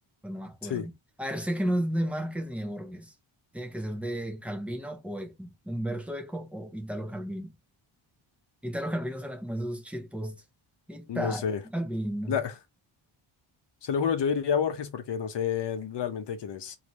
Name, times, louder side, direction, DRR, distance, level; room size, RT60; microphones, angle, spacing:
voice 1, 0.2-0.9 1.2-3.1 3.5-7.5 8.6-10.4 10.9-12.4, equal, 5° right, 0.7 m, -33 dB
voice 2, 11.1-11.6 12.3-12.5 13.8-16.8, left 7 dB, 55° left, 0.9 m, -29 dB
3.2 x 2.8 x 4.0 m
wide cardioid pair, 150°, 50 cm